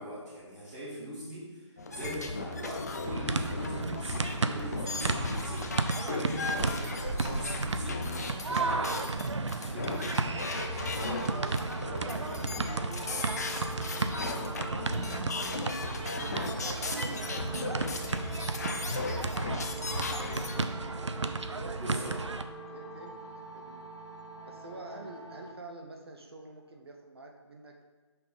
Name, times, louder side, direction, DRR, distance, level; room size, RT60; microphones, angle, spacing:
voice 1, 0.0-1.5 1.9-9.0 9.5-10.0 21.8-22.1, equal, 15° right, -11 dB, 1.6 m, -41 dB
sound 1, 1.8-20.6, left 3 dB, 35° left, 0.5 m, -37 dB
sound 2, 3.0-22.4, right 3 dB, 70° right, 0.5 m, -34 dB
sound 3, 10.5-25.5, right 2 dB, 65° left, 0.9 m, -46 dB
voice 2, 10.7-11.0 11.3-12.3 12.7-14.9 15.3-17.1 17.6-20.8 21.5-22.1 22.7-23.8 24.5-27.8, right 2 dB, 55° right, 2 dB, 0.9 m, -49 dB
5.6 x 3.6 x 5.5 m, 1.4 s
figure-of-eight pair, 150°, 16 cm